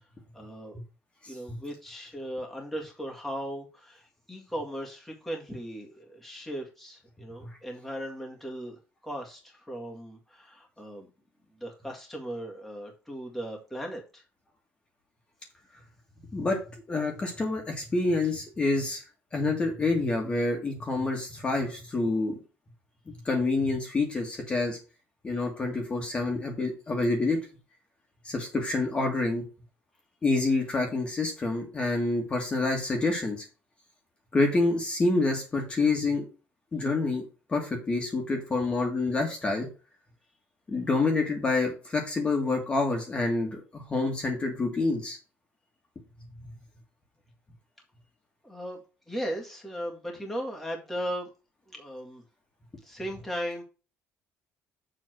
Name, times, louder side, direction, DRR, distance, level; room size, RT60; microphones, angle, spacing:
voice 1, 0.3-0.8 1.3-11.1 11.6-14.2 48.4-48.8 49.1-51.3 51.7-52.2 52.8-53.6, equal, 5° left, -1 dB, 1.9 m, -37 dB
voice 2, 1.2-1.6 7.4-7.5 16.3-16.6 16.9-19.0 19.3-22.4 23.3-24.8 25.2-27.4 28.2-29.4 30.2-33.5 34.3-36.3 36.7-37.2 37.5-39.7 40.7-45.2, left 3 dB, 20° left, 2 dB, 1.8 m, -27 dB
7.3 x 3.8 x 6.2 m, 0.33 s
cardioid pair, 150°, 5 cm